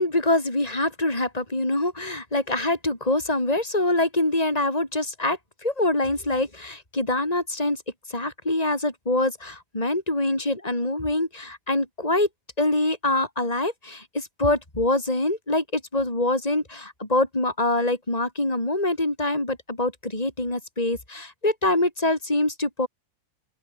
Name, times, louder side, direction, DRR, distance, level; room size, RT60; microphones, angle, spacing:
voice 1, 0.0-7.8 8.1-12.3 12.6-22.9, left 2 dB, 25° left, 5.3 m, -25 dB
open air
omnidirectional pair, 1.7 m